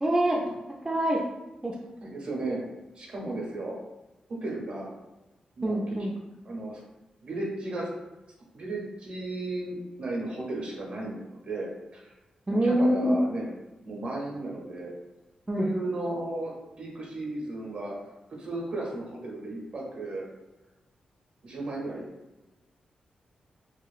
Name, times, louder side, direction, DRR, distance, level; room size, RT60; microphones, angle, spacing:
voice 1, 0.0-0.4 0.8-1.2 1.6-1.7 5.6-6.1 12.5-13.1 15.5-15.7, right 1 dB, 15° right, -2 dB, 0.3 m, -25 dB
voice 2, 2.0-2.6 3.0-3.7 4.4-4.9 5.6-6.0 6.5-6.8 7.2-7.9 8.5-11.2 11.5-12.1 12.5-13.5 13.8-14.9 15.6-17.9 18.4-20.3 21.4-22.0, right 2 dB, 55° right, -2 dB, 0.7 m, -34 dB
2.8 x 2.3 x 2.4 m, 1.0 s
wide cardioid pair, 105°, 2 cm